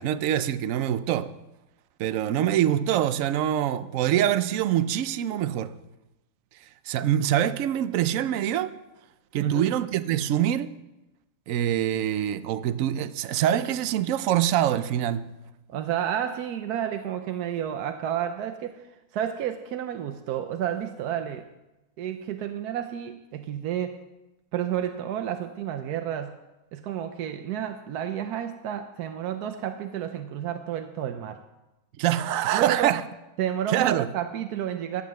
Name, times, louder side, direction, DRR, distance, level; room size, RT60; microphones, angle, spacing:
voice 1, 0.0-1.3 2.0-5.7 6.9-8.7 9.3-10.7 11.5-15.3 32.0-33.0 33.7-34.1, right 11 dB, 65° right, 1.0 m, -24 dB
voice 2, 9.4-9.7 15.7-21.5 22.0-24.0 24.5-26.4 26.7-31.4 32.5-33.0 33.4-35.0, right 10 dB, 85° right, 1.2 m, -31 dB
12.0 x 7.7 x 7.5 m
omnidirectional pair, 1.6 m